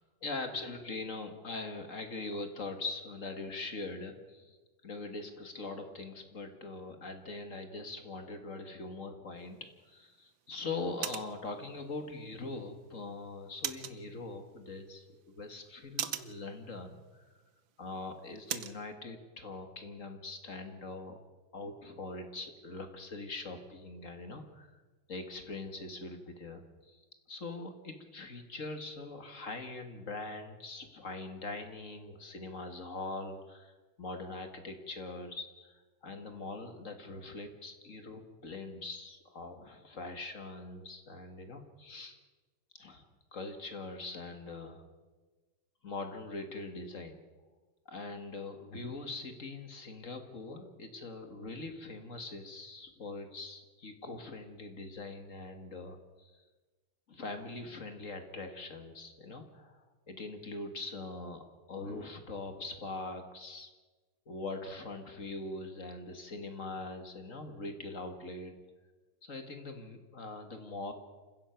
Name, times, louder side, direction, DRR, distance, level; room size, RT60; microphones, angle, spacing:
voice 1, 0.2-4.6 4.8-17.2 17.8-21.2 21.5-24.7 25.1-42.2 42.8-43.1 43.3-44.8 45.8-47.2 47.9-56.4 57.1-63.7 64.3-68.6 69.2-70.9, left 3 dB, 40° left, 6 dB, 2.1 m, -42 dB
sound 1, 9.4-18.8, right 10 dB, 75° right, 1.7 m, -45 dB
28.5 x 15.5 x 5.9 m, 1.3 s
omnidirectional pair, 2.1 m